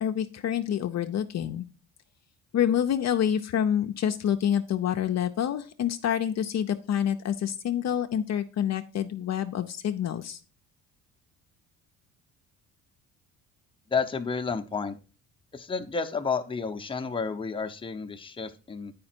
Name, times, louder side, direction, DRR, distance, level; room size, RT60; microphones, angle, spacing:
voice 1, 0.0-1.6 2.5-10.4, left 9 dB, 45° left, 6 dB, 0.6 m, -27 dB
voice 2, 13.9-15.0 15.5-18.9, left 5 dB, 15° left, 6 dB, 0.8 m, -31 dB
8.5 x 5.1 x 4.4 m, 0.36 s
cardioid pair, 90°, 36 cm